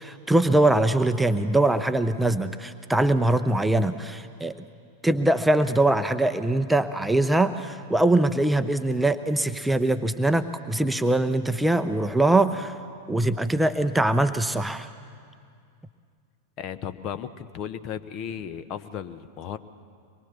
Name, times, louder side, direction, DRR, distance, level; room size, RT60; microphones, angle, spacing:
voice 1, 0.0-4.6 5.0-12.8 13.1-14.9, right 2 dB, 5° right, 9 dB, 0.7 m, -22 dB
voice 2, 16.6-19.6, left 8 dB, 40° left, 12 dB, 1.0 m, -35 dB
24.5 x 21.5 x 6.8 m, 2.3 s
figure-of-eight pair, 90°, 0 cm